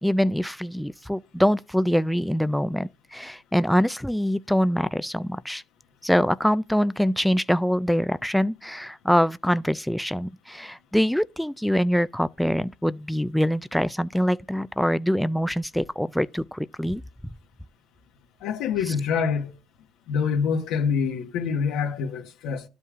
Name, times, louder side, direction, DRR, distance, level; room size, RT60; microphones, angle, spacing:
voice 1, 0.0-5.6 6.0-17.0, equal, ahead, 0.3 m, -24 dB
voice 2, 18.4-19.5 20.1-22.6, left 6 dB, 85° left, 1.3 m, -26 dB
12.0 x 5.4 x 2.5 m
cardioid pair, 115°, 0 cm